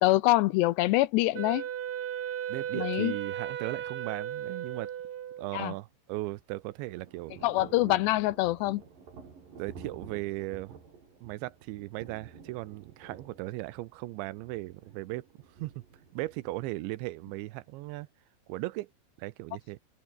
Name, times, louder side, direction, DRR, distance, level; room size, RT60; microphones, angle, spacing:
voice 1, 0.0-1.6 2.7-3.1 5.5-5.7 7.4-8.8, left 18 dB, 80° left, 2.6 m, -25 dB
Wind instrument woodwind instrument, 1.3-5.7, right 10 dB, 65° right, 1.7 m, -36 dB
voice 2, 2.5-4.9 5.4-7.4 9.6-10.8 11.2-15.3 15.6-15.8 16.1-18.1 18.5-18.9 19.2-19.8, right 19 dB, 80° right, 3.0 m, -37 dB
Thunder / Rain, 6.4-18.1, right 5 dB, 50° right, 6.6 m, -51 dB
open air
omnidirectional pair, 5.5 m